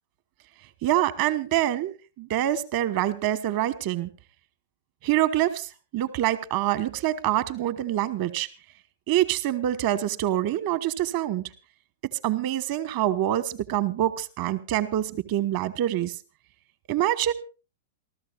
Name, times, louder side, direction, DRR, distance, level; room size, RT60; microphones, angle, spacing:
voice 1, 0.8-4.1 5.0-8.5 9.1-11.4 12.2-16.1 16.9-17.3, right 13 dB, 45° right, 14 dB, 1.2 m, -25 dB
28.0 x 13.5 x 2.4 m, 0.32 s
figure-of-eight pair, 100°, 0 cm